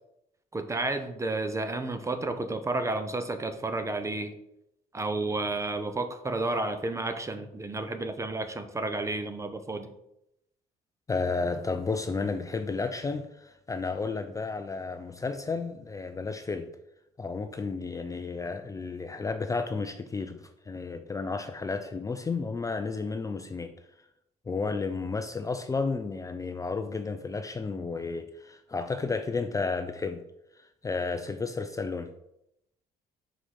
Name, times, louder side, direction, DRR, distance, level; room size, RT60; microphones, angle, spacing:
voice 1, 0.5-4.3 4.9-9.9, right 2 dB, 15° right, 9 dB, 0.7 m, -31 dB
voice 2, 11.1-16.7 17.2-23.7 24.5-30.2 30.6-32.1, left 4 dB, 20° left, 8 dB, 0.5 m, -32 dB
5.0 x 4.9 x 5.8 m, 0.82 s
cardioid pair, 110°, 17 cm